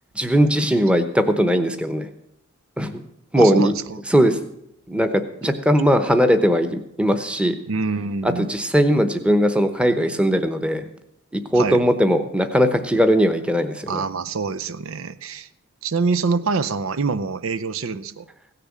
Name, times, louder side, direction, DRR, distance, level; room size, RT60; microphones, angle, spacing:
voice 1, 0.1-2.1 2.8-3.0 3.3-3.7 4.1-4.4 4.9-7.6 8.2-10.9 11.3-14.0, equal, 5° right, 8 dB, 0.9 m, -19 dB
voice 2, 3.4-4.0 7.7-8.5 11.6-11.8 13.9-15.5 15.8-18.3, right 4 dB, 70° right, 12 dB, 0.6 m, -25 dB
16.5 x 6.8 x 7.4 m, 0.77 s
head